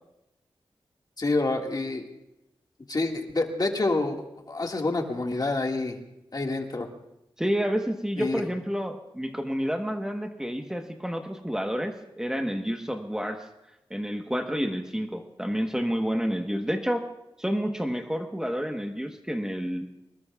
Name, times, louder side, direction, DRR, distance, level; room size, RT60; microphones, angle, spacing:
voice 1, 1.2-2.1 2.9-6.0 6.3-6.9 8.2-8.4, left 2 dB, 45° left, 2 dB, 2.0 m, -27 dB
voice 2, 7.4-13.4 13.9-17.0 17.4-19.9, equal, 5° right, 4 dB, 1.2 m, -29 dB
24.5 x 20.5 x 2.4 m, 0.90 s
cardioid pair, 60°, 10 cm